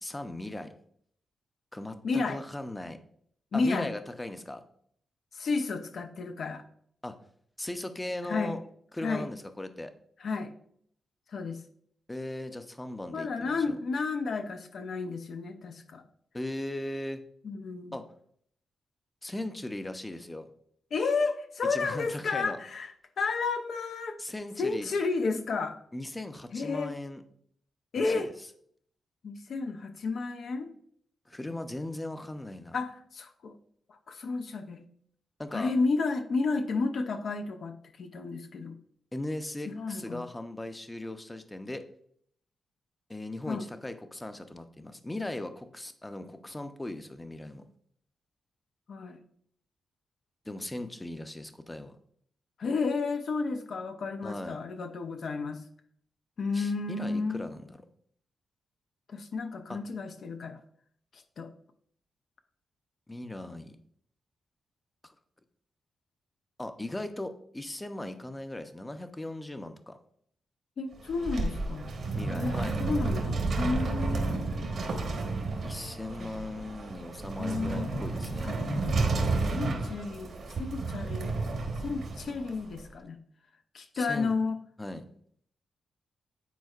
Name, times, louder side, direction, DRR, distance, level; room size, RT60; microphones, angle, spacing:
voice 1, 0.0-0.7 1.7-3.0 3.5-4.6 7.0-7.2 7.6-8.6 8.9-9.9 12.1-13.8 16.3-17.2 17.9-18.0 19.2-20.5 21.6-22.6 24.2-24.9 25.9-27.2 28.0-28.3 31.3-32.8 35.4-35.7 39.1-41.8 43.1-47.6 50.5-52.0 54.2-54.6 56.5-57.8 59.7-59.8 63.1-63.8 65.0-65.1 66.6-70.0 72.2-72.8 75.6-78.5 83.9-84.4 84.8-85.0, left 1 dB, 15° left, 8 dB, 0.6 m, -38 dB
voice 2, 2.0-2.4 3.5-3.9 5.3-6.6 8.2-8.6 9.0-9.3 10.2-10.5 11.3-11.6 13.1-16.0 17.4-18.0 20.9-24.2 24.6-25.8 26.5-27.0 27.9-28.3 29.2-30.7 32.7-33.5 33.9-34.8 35.5-38.8 39.7-40.2 43.5-43.7 48.9-49.2 52.6-55.7 56.4-57.4 59.1-60.6 61.1-61.5 70.8-71.9 72.3-74.7 76.2-76.3 77.4-78.0 78.4-78.6 79.4-80.3 80.6-81.3 81.8-83.2 83.7-84.6, left 4 dB, 65° left, 6 dB, 0.6 m, -32 dB
sound 1, 70.9-82.8, right 3 dB, 70° right, 1.2 m, -31 dB
9.2 x 4.3 x 2.4 m, 0.64 s
cardioid pair, 85°, 0 cm